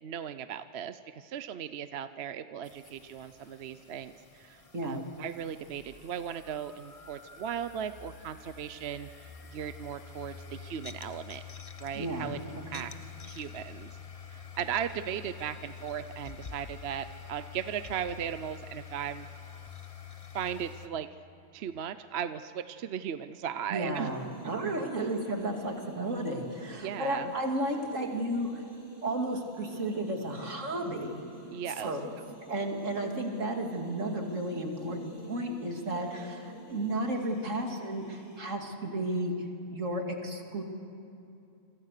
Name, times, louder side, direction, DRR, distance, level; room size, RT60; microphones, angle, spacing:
voice 1, 0.0-11.4 11.8-12.9 13.2-13.9 14.3-19.3 20.3-21.1 21.5-24.1 24.4-24.7 25.0-25.1 26.8-27.3 31.5-31.9, right 9 dB, 60° right, 12 dB, 0.9 m, -37 dB
sound 1, 2.6-20.9, left 6 dB, 30° left, 1.0 m, -47 dB
voice 2, 11.9-12.3 12.7-12.8 23.7-28.6 29.0-31.2 31.7-32.1 32.5-39.3 39.7-40.6, right 1 dB, 85° right, 2 dB, 3.0 m, -33 dB
sound 2, 23.9-38.4, right 2 dB, 90° left, 4.9 m, -48 dB
28.0 x 25.5 x 6.7 m, 2.6 s
omnidirectional pair, 1.3 m